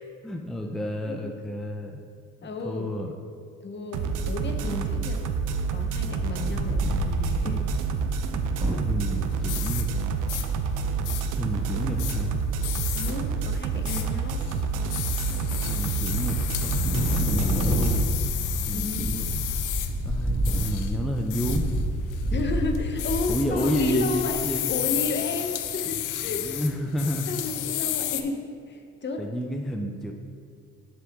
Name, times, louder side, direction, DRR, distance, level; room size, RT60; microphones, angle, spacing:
voice 1, 0.2-2.0 2.4-3.1 8.7-9.9 11.3-12.3 15.6-18.1 18.6-19.3 20.0-21.7 23.3-24.7 26.3-27.3 29.2-30.1, equal, ahead, 2 dB, 0.5 m, -30 dB
voice 2, 2.4-2.9 3.6-5.2 5.7-7.6 12.9-14.5 18.7-19.1 22.3-26.6 27.3-28.4 28.7-29.2, left 3 dB, 40° left, 4 dB, 0.8 m, -32 dB
sound 1, 3.9-18.0, right 5 dB, 80° right, 0.6 m, -28 dB
Wind, 6.3-9.3 9.8-9.9 10.1-10.5 11.9-12.5 13.0-13.5 13.9-15.0 15.5-15.9 16.2-24.5, equal, 25° right, 1.4 m, -29 dB
sound 2, 9.1-28.2, left 12 dB, 90° left, 0.5 m, -33 dB
7.3 x 6.1 x 3.5 m, 2.2 s
cardioid pair, 90°, 30 cm